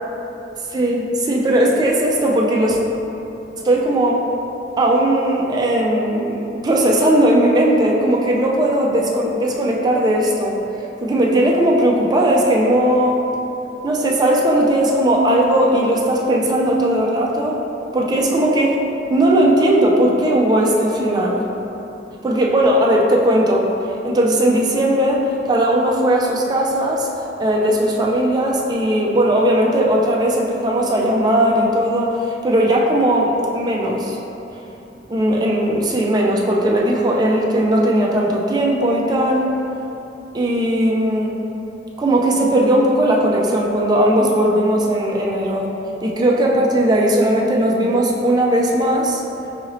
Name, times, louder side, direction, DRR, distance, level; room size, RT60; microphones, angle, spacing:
voice 1, 0.7-2.8 3.6-4.2 4.8-10.6 11.0-13.2 13.8-17.6 17.9-18.8 19.1-21.5 22.2-23.7 24.0-27.1 27.4-34.2 35.1-39.5 40.3-41.3 42.0-45.7 46.0-49.2, right 1 dB, 25° right, -2 dB, 0.3 m, -17 dB
4.8 x 2.6 x 2.9 m, 3.0 s
head